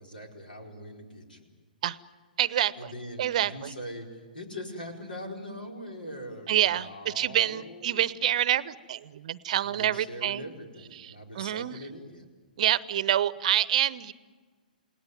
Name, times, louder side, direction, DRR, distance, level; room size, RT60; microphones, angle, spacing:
voice 1, 0.0-1.5 2.8-8.0 9.6-12.3, equal, 80° left, 2 dB, 4.6 m, -42 dB
voice 2, 2.4-2.9 3.2-3.7 6.5-10.4 11.0-11.8 12.6-14.1, right 11 dB, 50° right, 19 dB, 0.8 m, -27 dB
29.0 x 18.5 x 9.5 m, 1.5 s
figure-of-eight pair, 115°, 5 cm